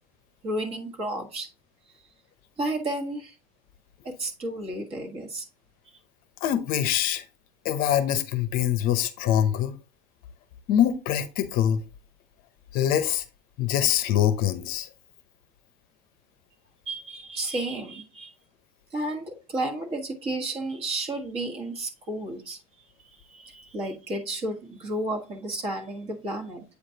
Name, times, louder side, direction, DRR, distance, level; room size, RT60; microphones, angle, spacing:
voice 1, 0.4-1.5 2.6-3.3 4.0-5.4 5.8-6.0 16.9-18.3 18.9-22.6 23.0-26.6, right 1 dB, 30° right, 1.4 m, -32 dB
voice 2, 6.4-7.2 7.6-9.7 10.7-11.8 12.7-13.2 13.6-14.9, left 10 dB, 45° left, 0.7 m, -24 dB
8.3 x 5.0 x 2.8 m
supercardioid pair, 155°, 20 cm